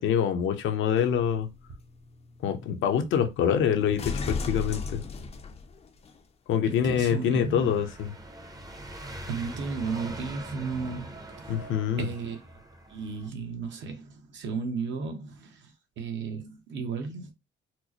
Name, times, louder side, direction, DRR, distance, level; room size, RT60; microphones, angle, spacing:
voice 1, 0.0-1.5 2.4-5.0 6.5-8.1 11.5-12.1, left 8 dB, 75° left, 0.8 m, -25 dB
sound 1, 0.8-6.2 7.0-7.1, left 4 dB, 30° left, 0.5 m, -37 dB
sound 2, 6.6-13.3, right 1 dB, 20° right, 0.7 m, -43 dB
voice 2, 6.7-7.7 9.3-11.5 12.0-12.4 12.9-17.3, right 5 dB, 65° right, 1.0 m, -34 dB
4.4 x 2.1 x 2.8 m
cardioid pair, 110°, 20 cm